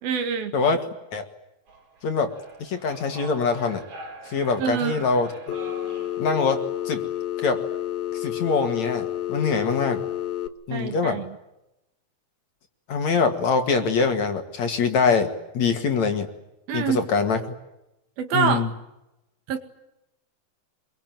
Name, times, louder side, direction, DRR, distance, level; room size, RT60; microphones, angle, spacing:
voice 1, 0.0-0.5 4.6-5.0 10.7-11.4 16.7-17.0 18.2-18.6 19.5-19.6, right 7 dB, 70° right, 8 dB, 3.9 m, -26 dB
voice 2, 0.5-0.9 1.1-1.3 2.0-2.3 2.6-3.8 4.3-5.3 6.2-7.0 7.4-7.6 8.1-10.0 10.7-11.2 12.9-16.3 16.7-17.5 18.3-18.7, left 5 dB, 50° left, 6 dB, 3.0 m, -24 dB
sound 1, 1.7-6.7, right 4 dB, 55° right, 4.9 m, -44 dB
Telephone, 5.5-10.5, left 12 dB, 75° left, 2.9 m, -30 dB
26.5 x 23.5 x 9.1 m, 0.90 s
omnidirectional pair, 4.5 m